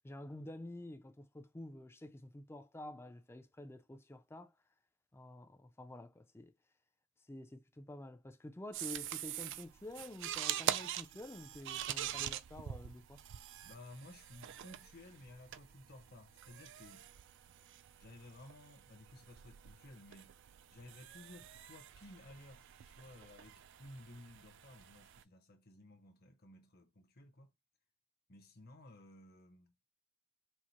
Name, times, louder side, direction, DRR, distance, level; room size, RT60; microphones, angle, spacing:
voice 1, 0.0-4.5 5.1-6.5 7.3-13.2, left 1 dB, 10° left, 0.4 m, -49 dB
sound 1, 8.7-25.2, right 11 dB, 55° right, 0.3 m, -44 dB
voice 2, 13.6-17.1 18.0-20.4 20.7-27.5 28.3-29.7, left 1 dB, 45° left, 0.9 m, -56 dB
4.7 x 2.1 x 4.2 m
head